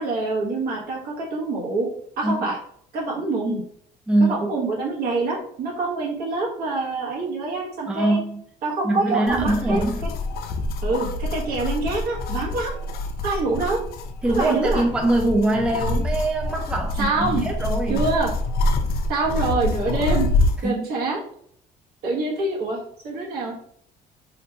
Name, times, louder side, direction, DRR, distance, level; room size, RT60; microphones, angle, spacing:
voice 1, 0.0-1.9 2.2-2.6 2.9-3.6 4.2-8.2 8.6-10.1 10.8-12.8 13.2-13.8 14.3-14.8 17.0-17.5 17.9-18.3 19.1-20.3 20.6-21.2 22.0-22.8 23.0-23.5, right 3 dB, 65° right, -3 dB, 1.2 m, -25 dB
voice 2, 4.1-4.5 7.9-8.4 8.8-10.1 14.2-18.0 20.6-20.8, right 2 dB, 5° right, 2 dB, 0.4 m, -23 dB
sound 1, 9.3-20.6, left 2 dB, 65° left, 0.5 m, -26 dB
2.9 x 2.5 x 3.3 m, 0.65 s
cardioid pair, 110°, 17 cm